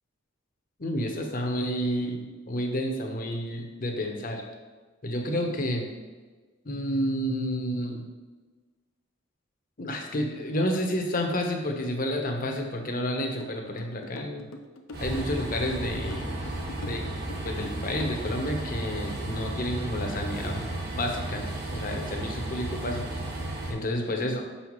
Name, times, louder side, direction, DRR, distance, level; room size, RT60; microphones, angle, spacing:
voice 1, 0.8-4.4 5.0-5.9 6.6-8.0 9.8-14.5 15.0-16.3 16.8-17.0 17.4-23.2 23.7-24.4, equal, 45° left, 2 dB, 1.0 m, -30 dB
sound 1, 13.4-18.7, left 2 dB, 85° left, 0.7 m, -44 dB
Train, 14.9-23.7, right 1 dB, 55° right, 1.3 m, -34 dB
6.9 x 5.6 x 3.1 m, 1.4 s
head